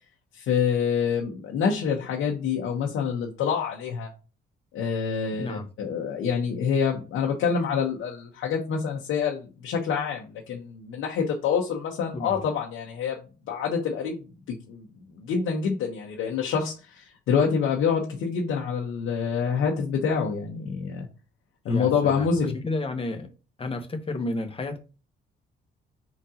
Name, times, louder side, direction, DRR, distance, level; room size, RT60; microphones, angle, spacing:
voice 1, 0.4-4.1 4.7-13.2 13.5-14.2 14.5-14.9 15.1-21.1 21.6-22.6, left 6 dB, 85° left, 0.9 m, -26 dB
voice 2, 21.6-23.3 23.6-24.8, left 2 dB, 30° left, 1.1 m, -32 dB
5.0 x 3.8 x 2.8 m
cardioid pair, 90°, 20 cm